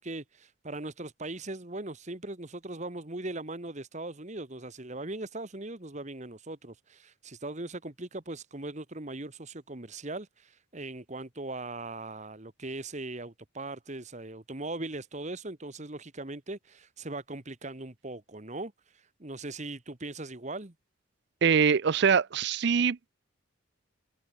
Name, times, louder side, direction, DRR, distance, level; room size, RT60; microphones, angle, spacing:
voice 1, 0.0-20.7, right 2 dB, 35° right, 1.4 m, -39 dB
voice 2, 21.4-23.1, right 6 dB, 55° right, 0.4 m, -24 dB
head